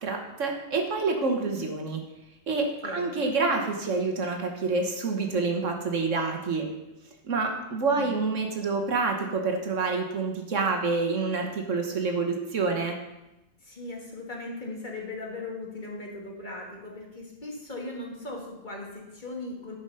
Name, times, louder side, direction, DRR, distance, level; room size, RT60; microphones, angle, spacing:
voice 1, 0.0-2.0 2.5-6.7 7.2-12.9, right 4 dB, 65° right, 3 dB, 1.5 m, -27 dB
voice 2, 2.6-3.2 7.9-8.3 13.6-19.8, left 2 dB, 35° left, -1 dB, 1.9 m, -38 dB
11.0 x 5.4 x 5.5 m, 0.96 s
omnidirectional pair, 1.4 m